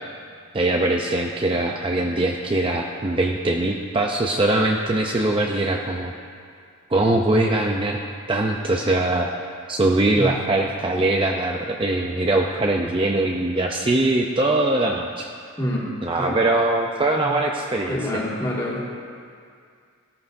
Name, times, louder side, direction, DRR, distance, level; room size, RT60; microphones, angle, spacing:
voice 1, 0.5-6.1 6.9-8.0 8.3-9.3 9.7-15.3 16.0-18.2, right 2 dB, 25° right, 1 dB, 0.5 m, -22 dB
voice 2, 17.9-18.8, equal, 15° left, -5 dB, 2.0 m, -26 dB
17.5 x 14.0 x 2.6 m, 2.2 s
head